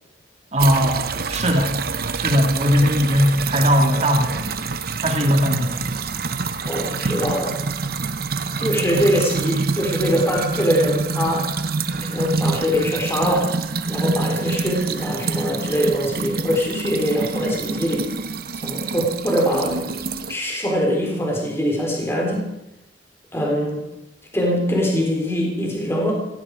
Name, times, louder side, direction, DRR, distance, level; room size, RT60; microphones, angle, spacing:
voice 1, 0.5-4.5 5.0-5.8, equal, 35° right, 3 dB, 1.9 m, -19 dB
sound 1, 0.6-20.3, right 4 dB, 55° right, 0.9 m, -26 dB
voice 2, 6.6-7.6 8.6-11.5 11.9-13.5 13.9-18.1 18.6-20.0 20.3-22.5 23.3-23.8 24.3-26.1, equal, 15° left, -1 dB, 3.8 m, -22 dB
17.0 x 16.5 x 4.9 m, 0.87 s
head